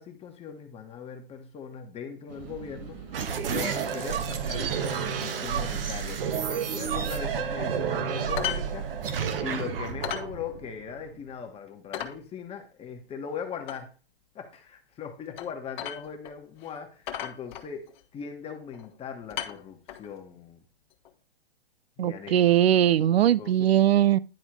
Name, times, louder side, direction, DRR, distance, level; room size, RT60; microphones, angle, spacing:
voice 1, 0.0-3.0 3.5-8.9 9.4-13.9 14.3-20.6 22.0-22.5 23.1-23.7, left 7 dB, 20° left, 1.3 m, -40 dB
sound 1, 2.3-9.9, right 6 dB, 50° right, 2.3 m, -44 dB
sound 2, 3.1-11.3, right 7 dB, 70° right, 1.2 m, -30 dB
sound 3, 8.4-8.7 8.9-9.0 9.4-9.5 10.0-10.3 10.7-10.8 11.3-11.4 11.9-12.2 13.7-13.8 15.4-15.5 15.8-16.3 16.6-16.7 17.1-18.0 18.7-18.9 19.3-20.1 21.0-21.1, left 11 dB, 55° left, 1.3 m, -35 dB
voice 2, 22.0-24.2, right 11 dB, 85° right, 0.5 m, -20 dB
10.5 x 3.6 x 4.7 m
hypercardioid pair, 130°, 29 cm